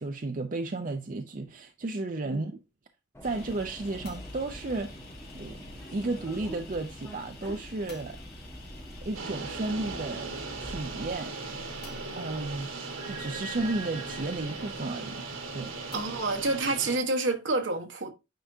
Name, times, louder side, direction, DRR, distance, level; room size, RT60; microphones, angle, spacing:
voice 1, 0.0-2.5 3.2-5.0 5.3-5.6 5.9-8.2 9.0-11.4 12.2-12.7 13.1-15.2 15.5-15.7, right 2 dB, 40° right, 0.5 m, -33 dB
Subway metro underground, 3.1-11.1, equal, 15° left, 1.4 m, -45 dB
sound 1, 3.2-16.5, left 2 dB, 50° left, 2.2 m, -49 dB
sound 2, 9.1-17.0, right 3 dB, 90° right, 1.5 m, -38 dB
voice 2, 15.9-18.1, right 2 dB, 70° right, 1.2 m, -28 dB
9.2 x 4.8 x 2.7 m
head